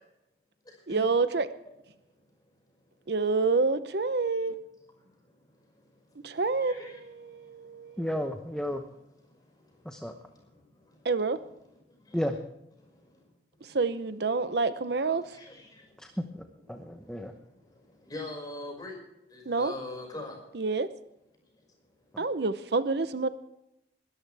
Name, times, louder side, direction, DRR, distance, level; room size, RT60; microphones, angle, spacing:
voice 1, 0.9-1.5 3.1-4.6 6.2-8.1 11.0-11.4 13.7-15.2 19.5-19.7 20.5-20.9 22.2-23.3, right 4 dB, 65° right, 12 dB, 0.8 m, -28 dB
voice 2, 6.6-7.0 15.3-15.7 18.1-18.9 19.3-20.4, left 2 dB, 20° left, 1 dB, 5.7 m, -40 dB
voice 3, 8.0-8.8 9.8-10.1 12.1-12.4 16.0-16.4 16.7-17.3, equal, 5° left, 5 dB, 1.0 m, -32 dB
21.5 x 13.0 x 3.5 m, 0.84 s
head